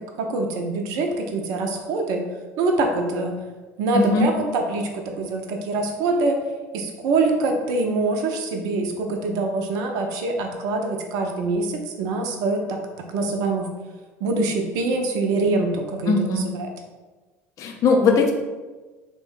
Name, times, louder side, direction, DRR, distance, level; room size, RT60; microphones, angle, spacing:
voice 1, 0.0-2.2 2.6-3.3 3.8-6.4 6.7-13.7 14.2-16.7, right 3 dB, 55° right, 3 dB, 0.4 m, -24 dB
voice 2, 3.9-4.3 16.1-16.5 17.6-18.3, left 4 dB, 45° left, 2 dB, 0.5 m, -19 dB
3.2 x 2.1 x 3.1 m, 1.3 s
figure-of-eight pair, 65°, 8 cm